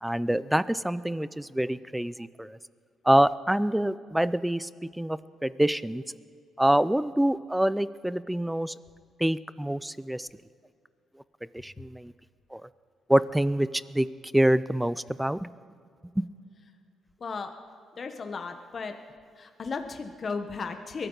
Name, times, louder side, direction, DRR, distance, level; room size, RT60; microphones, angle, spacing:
voice 1, 0.0-2.6 3.0-4.7 5.0-6.0 6.6-8.7 9.2-10.3 11.6-12.1 12.5-12.6 13.1-14.1 14.3-15.5 16.2-16.3, right 1 dB, 5° right, 17 dB, 0.4 m, -26 dB
voice 2, 17.2-17.5 18.0-18.9 19.4-21.1, left 4 dB, 45° left, 6 dB, 1.1 m, -35 dB
22.5 x 13.5 x 3.9 m, 2.3 s
cardioid pair, 90°, 0 cm